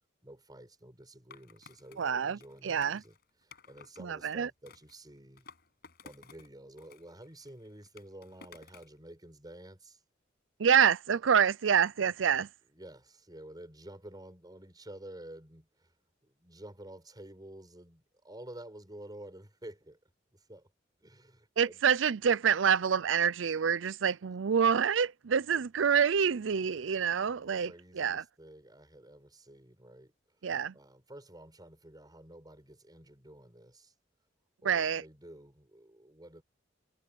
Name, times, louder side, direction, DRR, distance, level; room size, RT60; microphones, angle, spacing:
voice 1, 0.2-5.4 6.0-10.0 12.7-15.9 16.2-20.0 20.3-20.7 21.0-21.8 25.5-25.6 26.8-26.9 27.3-30.5 30.7-33.9 34.6-36.4, right 1 dB, 20° right, 5.7 m, -51 dB
Skateboard, 1.3-4.0 4.7-6.5 6.8-9.0, left 5 dB, 60° left, 6.7 m, -56 dB
voice 2, 2.0-3.0 4.0-4.5 10.6-12.5 21.6-28.2 30.4-30.7 34.6-35.0, right 7 dB, 90° right, 0.5 m, -27 dB
head